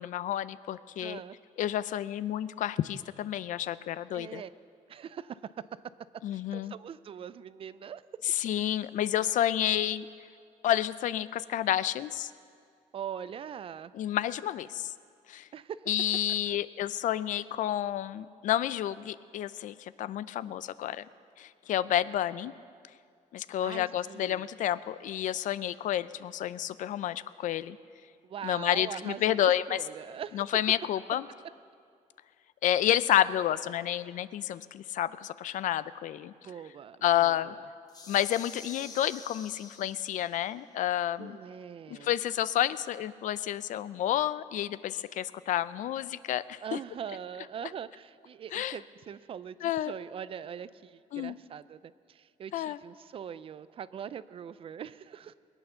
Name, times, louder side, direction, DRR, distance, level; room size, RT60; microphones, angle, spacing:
voice 1, 0.0-1.2 1.6-4.4 6.2-6.7 8.3-10.1 10.6-12.3 13.9-14.9 15.3-15.5 15.9-21.0 21.4-22.5 23.3-27.8 28.4-29.8 30.3-31.2 32.6-36.3 37.0-37.5 38.1-41.4 41.9-46.8 48.5-48.8 49.6-49.9 51.1-51.4 52.5-52.8, left 12 dB, 65° left, 16 dB, 0.5 m, -30 dB
voice 2, 1.0-1.4 4.1-4.5 4.9-5.5 6.3-8.0 12.9-13.9 15.5-15.9 16.5-16.6 23.6-24.5 28.2-30.6 36.4-37.6 41.2-42.1 46.6-55.3, right 8 dB, 40° right, 16 dB, 0.4 m, -42 dB
sound 1, 37.9-40.4, left 3 dB, 30° left, 1.1 m, -48 dB
21.5 x 9.1 x 6.9 m, 2.2 s
cardioid pair, 145°, 14 cm